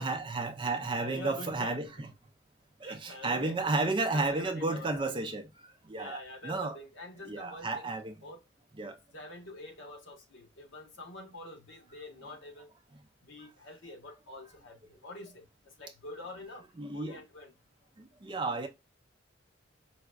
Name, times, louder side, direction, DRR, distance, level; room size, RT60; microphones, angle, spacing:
voice 1, 0.0-2.1 2.8-5.4 5.9-6.2 6.4-6.8 7.2-8.1 8.8-8.9 16.8-17.2 18.2-18.7, right 3 dB, 25° right, 0.4 m, -32 dB
voice 2, 1.0-1.9 2.8-5.2 6.0-7.9 8.2-8.4 9.1-12.7 13.2-15.5 15.8-16.7 16.9-17.5, left 2 dB, 80° left, 1.0 m, -46 dB
4.7 x 2.2 x 2.2 m
head